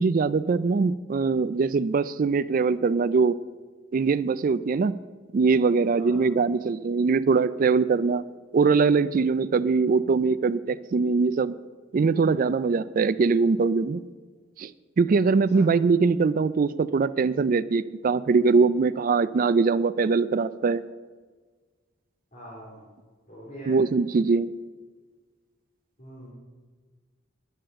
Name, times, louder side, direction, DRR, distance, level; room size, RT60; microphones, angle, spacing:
voice 1, 0.0-3.4 3.9-5.0 5.3-8.2 8.5-11.5 11.9-14.0 14.6-14.7 15.0-20.8 23.7-24.5, right 4 dB, 45° right, 16 dB, 0.3 m, -22 dB
voice 2, 22.3-22.9 23.3-23.8 26.0-26.3, right 1 dB, 40° left, -6 dB, 3.8 m, -43 dB
10.0 x 10.0 x 7.7 m, 1.4 s
head